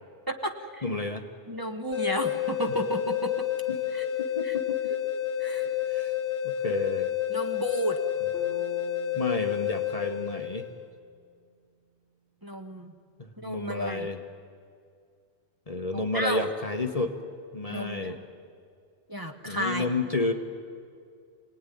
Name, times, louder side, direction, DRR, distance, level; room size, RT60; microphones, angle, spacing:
voice 1, 0.3-0.8 1.5-3.5 3.9-4.0 4.4-4.6 5.4-5.8 7.3-8.0 12.4-12.9 13.4-14.1 15.9-16.5 17.7-18.2 19.1-19.9, equal, 20° right, 4 dB, 1.4 m, -32 dB
voice 2, 0.8-1.3 3.7-4.9 5.9-6.1 6.4-7.1 9.1-10.6 13.2-14.2 15.7-17.1 17.5-18.2 19.4-20.3, left 2 dB, 35° left, 5 dB, 1.2 m, -31 dB
sound 1, 1.9-10.9, left 11 dB, 90° left, 1.4 m, -30 dB
sound 2, 8.3-12.4, equal, ahead, 6.3 m, -47 dB
26.5 x 18.5 x 10.0 m, 2.3 s
omnidirectional pair, 1.1 m